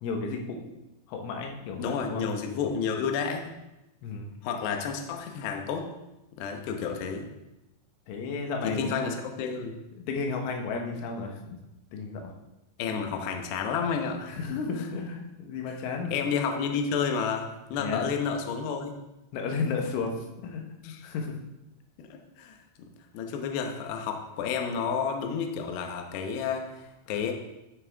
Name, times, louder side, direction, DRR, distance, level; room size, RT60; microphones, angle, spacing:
voice 1, 0.0-0.7 1.1-2.3 4.0-4.3 8.1-9.0 10.0-11.6 11.9-12.3 14.3-16.2 17.8-18.0 19.3-20.6 21.0-21.4, left 4 dB, 90° left, 2 dB, 3.7 m, -33 dB
voice 2, 1.8-3.5 4.4-5.9 6.4-7.3 8.6-9.8 12.8-14.3 16.1-18.9 20.8-21.0 22.0-22.5 23.1-27.3, left 6 dB, 75° left, 4 dB, 2.9 m, -31 dB
13.0 x 7.5 x 3.5 m, 0.94 s
omnidirectional pair, 5.4 m